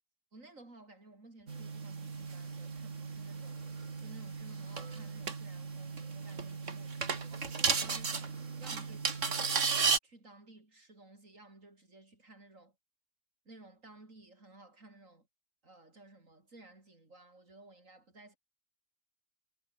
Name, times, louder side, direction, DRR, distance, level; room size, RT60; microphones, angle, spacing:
voice 1, 0.3-3.6 4.0-9.5 10.0-12.7 13.5-15.3 15.6-18.4, right 2 dB, 90° right, 5.7 m, -56 dB
sound 1, 1.5-10.0, right 5 dB, 70° right, 2.4 m, -35 dB
omnidirectional pair, 1.3 m